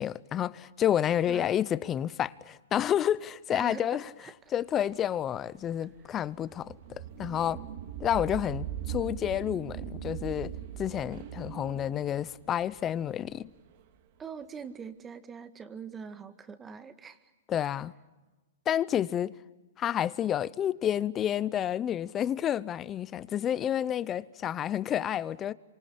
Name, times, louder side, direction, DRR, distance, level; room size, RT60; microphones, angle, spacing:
voice 1, 0.0-4.0 4.5-7.6 8.0-10.5 10.8-13.5 17.5-17.9 18.7-19.3 19.8-25.5, left 10 dB, 25° left, 0.8 m, -30 dB
voice 2, 3.5-4.3 14.2-17.3, right 6 dB, 15° right, 1.9 m, -43 dB
sound 1, 4.8-13.8, right 10 dB, 50° right, 2.5 m, -40 dB
27.5 x 25.5 x 8.4 m
hypercardioid pair, 135°, 0 cm